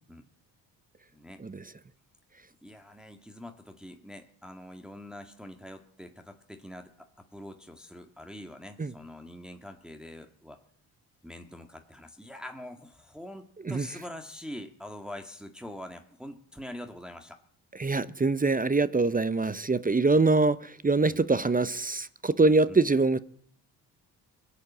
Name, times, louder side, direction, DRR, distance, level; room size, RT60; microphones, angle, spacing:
voice 1, 1.1-1.4 2.6-10.6 11.2-17.4 21.1-21.2 22.7-22.8, left 1 dB, ahead, 4 dB, 1.8 m, -44 dB
voice 2, 17.8-23.2, right 3 dB, 20° right, 17 dB, 0.8 m, -24 dB
22.0 x 8.6 x 7.4 m, 0.63 s
hypercardioid pair, 55°, 47 cm